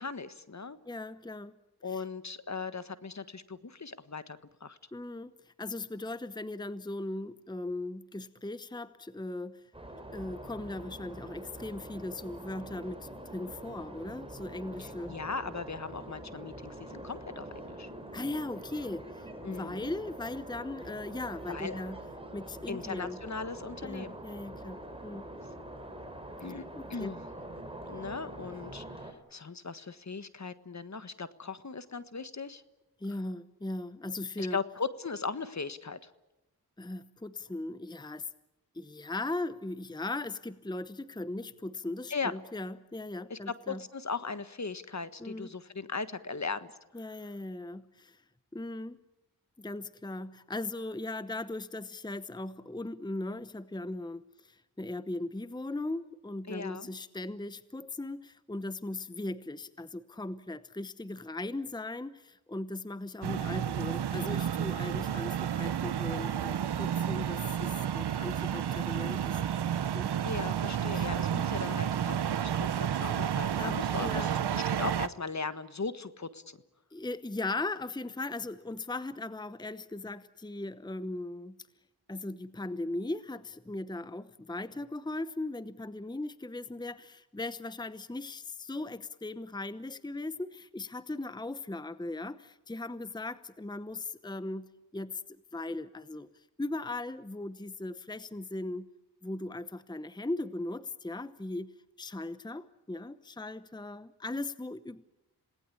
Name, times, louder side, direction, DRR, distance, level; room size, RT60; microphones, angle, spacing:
voice 1, 0.0-0.8 1.8-4.8 14.8-17.9 19.4-19.9 21.5-21.8 22.7-24.1 26.4-26.6 26.9-27.2 27.9-32.6 34.4-36.1 42.1-42.3 43.3-46.7 56.5-56.9 70.2-76.6, left 4 dB, 45° left, 13 dB, 1.5 m, -38 dB
voice 2, 0.8-1.6 1.9-2.0 4.9-9.6 9.9-15.2 18.1-22.0 22.3-23.2 23.8-25.2 26.7-27.1 33.0-34.6 36.8-38.3 38.7-43.8 45.2-45.5 46.9-48.2 48.5-49.0 49.6-69.4 69.9-70.1 70.9-71.1 72.6-72.7 73.6-74.3 76.9-81.6 82.1-95.2 95.5-98.9 99.2-101.7 102.0-105.1, left 2 dB, 10° left, 14 dB, 0.9 m, -38 dB
sound 1, 9.7-29.1, right 1 dB, 15° right, 4.5 m, -45 dB
sound 2, 63.2-75.1, right 9 dB, 90° right, 0.8 m, -31 dB
27.0 x 19.0 x 8.5 m, 1.0 s
cardioid pair, 50°, 38 cm